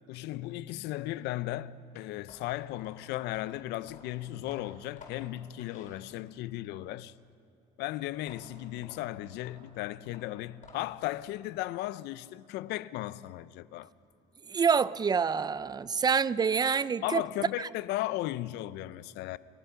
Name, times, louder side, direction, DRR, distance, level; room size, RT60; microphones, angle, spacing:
voice 1, 0.1-7.1 7.8-13.9 17.0-19.4, left 15 dB, 90° left, 0.5 m, -36 dB
sound 1, 2.2-6.5 8.1-11.1, left 4 dB, 50° left, 4.5 m, -54 dB
voice 2, 14.5-17.2, right 6 dB, 25° right, 0.4 m, -27 dB
29.5 x 15.0 x 5.8 m
cardioid pair, 110°, 17 cm